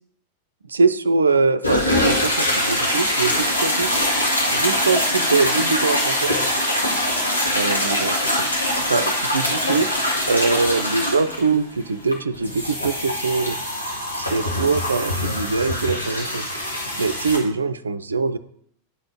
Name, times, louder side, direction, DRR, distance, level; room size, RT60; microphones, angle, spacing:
voice 1, 0.7-4.0 4.5-6.4 7.5-8.5 8.9-9.9 10.3-13.6 14.1-16.5 17.0-18.4, right 4 dB, 75° right, 14 dB, 0.4 m, -23 dB
sound 1, 1.6-17.4, left 1 dB, 85° left, 1.4 m, -23 dB
9.4 x 4.1 x 4.6 m, 0.68 s
figure-of-eight pair, 90°, 0 cm